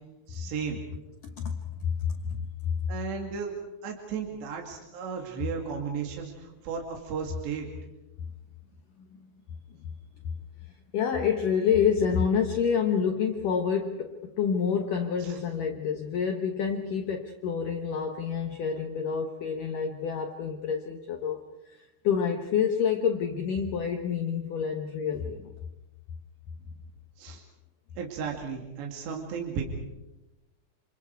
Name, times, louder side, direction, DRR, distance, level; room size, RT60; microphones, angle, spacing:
voice 1, 0.3-0.8 2.9-3.5 3.8-7.7 15.2-15.4 27.2-27.4 28.0-29.9, right 6 dB, 60° right, 0 dB, 4.4 m, -34 dB
voice 2, 1.9-2.7 9.0-9.1 9.8-9.9 10.9-21.4 21.6-25.5, left 7 dB, 80° left, 4 dB, 1.8 m, -28 dB
28.5 x 27.5 x 4.7 m, 1.0 s
omnidirectional pair, 5.9 m